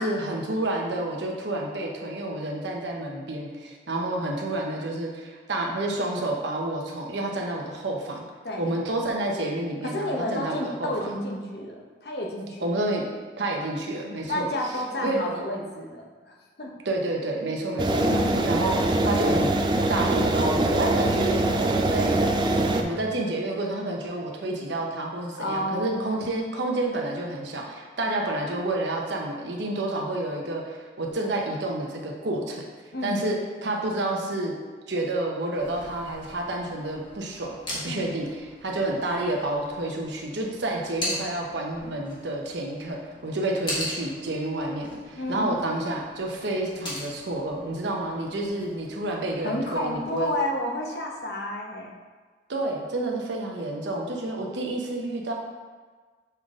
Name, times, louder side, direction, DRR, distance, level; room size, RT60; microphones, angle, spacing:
voice 1, 0.0-8.2 8.6-11.1 12.6-13.0 13.4-14.5 15.0-15.2 16.8-18.0 18.5-18.8 19.0-19.6 19.9-22.2 22.7-32.6 33.0-33.4 33.6-34.5 34.9-50.3 52.5-55.3, right 2 dB, 80° right, 0 dB, 0.9 m, -29 dB
voice 2, 9.9-12.7 14.3-16.7 18.0-18.5 25.4-26.1 32.9-33.2 37.8-38.0 45.2-45.5 49.4-51.9, left 1 dB, 60° left, -1 dB, 1.0 m, -31 dB
sound 1, 17.8-22.8, right 2 dB, 25° right, 0.3 m, -23 dB
sound 2, 35.6-50.3, left 1 dB, 25° left, 1.5 m, -40 dB
6.7 x 4.0 x 3.7 m, 1.5 s
head